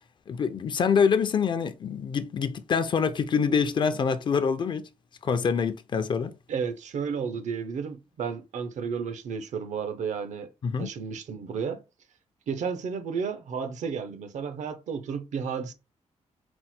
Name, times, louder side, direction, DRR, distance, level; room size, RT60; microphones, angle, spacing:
voice 1, 0.3-4.9 5.2-6.3 10.6-10.9, left 6 dB, 40° left, 0.4 m, -25 dB
voice 2, 6.5-10.5 10.8-11.8 12.5-15.7, right 6 dB, 80° right, 0.7 m, -32 dB
4.4 x 2.1 x 4.2 m
wide cardioid pair, 155°, 12 cm